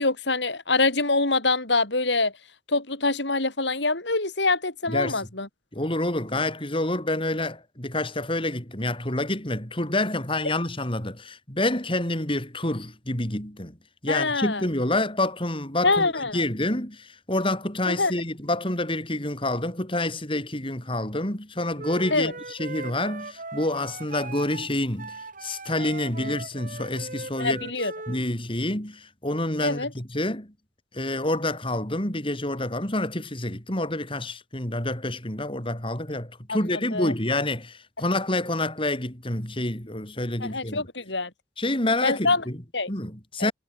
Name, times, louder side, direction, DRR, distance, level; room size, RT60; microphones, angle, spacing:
voice 1, 0.0-2.3 2.7-5.5 14.1-14.6 15.8-16.4 17.9-18.1 22.1-22.3 26.2-26.4 27.4-27.9 29.6-29.9 36.5-37.1 40.4-41.3 42.0-42.4 42.7-42.9 43.4-43.5, left 3 dB, 80° left, 5.9 m, -25 dB
voice 2, 4.9-5.2 5.7-13.8 14.0-27.7 28.1-30.5 30.9-40.8 41.6-42.6 42.9-43.5, left 1 dB, 30° left, 5.2 m, -28 dB
Wind instrument woodwind instrument, 21.8-28.2, right 3 dB, 45° right, 5.2 m, -39 dB
head